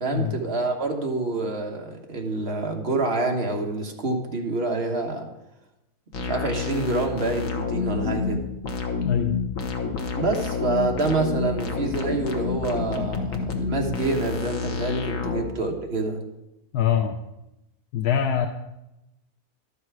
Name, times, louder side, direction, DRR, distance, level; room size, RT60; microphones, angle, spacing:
voice 1, 0.0-5.2 6.2-8.4 10.1-16.2, right 2 dB, 40° right, 2 dB, 1.4 m, -27 dB
sound 1, 6.1-15.4, left 5 dB, 60° left, 1.4 m, -28 dB
voice 2, 9.0-9.4 15.2-15.4 16.7-17.2 17.9-18.5, left 8 dB, 80° left, 4 dB, 1.2 m, -24 dB
12.0 x 6.7 x 4.7 m, 0.92 s
omnidirectional pair, 1.7 m